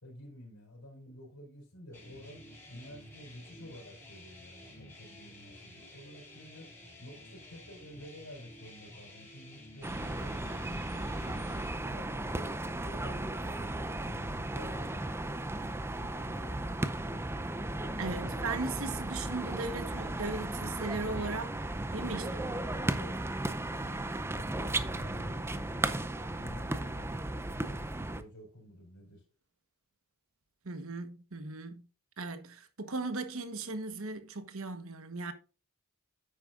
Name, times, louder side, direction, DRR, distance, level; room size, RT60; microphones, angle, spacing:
voice 1, 0.0-6.7 7.0-11.5 11.9-15.6 15.9-17.4 18.2-18.6 22.0-25.9 26.3-29.2, equal, 85° left, 4.7 m, -50 dB
sound 1, 1.9-11.7, left 1 dB, 10° left, 5.6 m, -52 dB
sound 2, 9.8-28.2, right 1 dB, 10° right, 0.5 m, -35 dB
voice 2, 18.0-21.6 21.9-22.2 30.6-31.9 32.2-35.3, right 3 dB, 65° right, 1.2 m, -37 dB
9.9 x 8.8 x 2.5 m
head